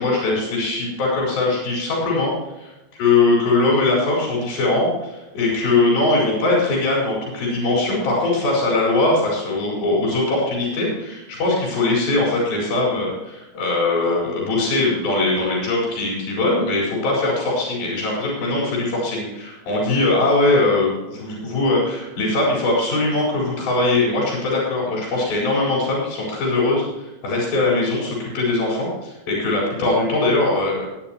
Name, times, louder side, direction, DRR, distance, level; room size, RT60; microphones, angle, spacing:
voice 1, 0.0-30.9, left 2 dB, 75° left, -4 dB, 6.5 m, -21 dB
20.0 x 9.7 x 3.1 m, 1.0 s
omnidirectional pair, 4.3 m